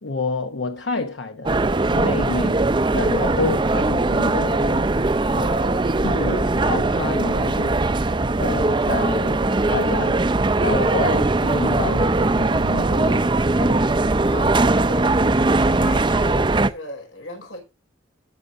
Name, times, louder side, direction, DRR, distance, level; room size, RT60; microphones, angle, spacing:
voice 1, 0.0-2.7 2.9-4.9 5.4-7.9 8.4-10.2 10.6-13.3 13.6-13.9, left 3 dB, 70° left, 1.0 m, -29 dB
sound 1, 1.5-16.7, right 2 dB, 25° right, 0.6 m, -20 dB
voice 2, 14.3-15.1 15.5-17.6, left 1 dB, 90° left, 5.1 m, -37 dB
19.0 x 6.9 x 2.6 m
head